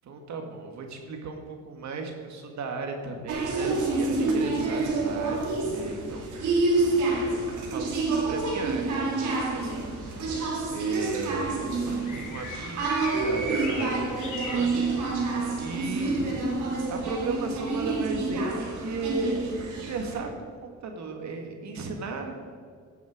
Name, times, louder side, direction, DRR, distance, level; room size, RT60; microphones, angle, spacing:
voice 1, 0.1-6.7 7.6-9.9 10.7-11.6 12.0-16.2 16.9-22.3, right 3 dB, 65° right, 3 dB, 2.1 m, -36 dB
sound 1, 3.3-20.2, right 3 dB, 80° right, 2.4 m, -28 dB
sound 2, 9.1-16.4, left 3 dB, 85° left, 2.9 m, -44 dB
15.5 x 7.1 x 5.0 m, 2.1 s
cardioid pair, 90°, 30 cm